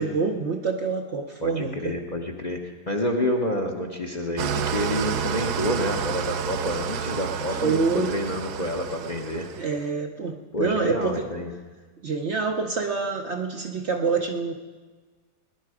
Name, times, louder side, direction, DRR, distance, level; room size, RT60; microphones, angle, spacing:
voice 1, 0.0-2.0 7.5-8.1 9.5-11.3 12.0-14.5, right 4 dB, 50° right, 3 dB, 0.9 m, -27 dB
voice 2, 1.4-2.6 2.9-9.5 10.5-11.5, left 1 dB, 30° left, 3 dB, 0.9 m, -28 dB
Engine starting / Idling, 4.4-9.8, right 8 dB, 70° right, 1.2 m, -30 dB
19.0 x 10.5 x 4.8 m, 1.4 s
omnidirectional pair, 1.8 m